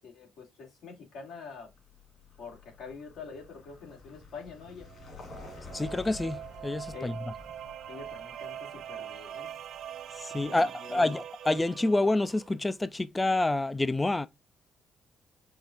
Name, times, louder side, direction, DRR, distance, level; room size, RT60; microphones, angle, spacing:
voice 1, 0.0-1.7 2.4-4.9 6.9-7.1 7.9-9.5 10.4-11.1, left 5 dB, 80° left, 2.3 m, -46 dB
Vehicle, 1.7-10.5, left 3 dB, 55° left, 2.6 m, -50 dB
sound 1, 4.8-12.6, right 10 dB, 70° right, 0.5 m, -43 dB
voice 2, 5.7-7.1 10.2-14.3, left 2 dB, 15° left, 0.4 m, -28 dB
5.6 x 2.5 x 2.8 m
cardioid pair, 90°, 0 cm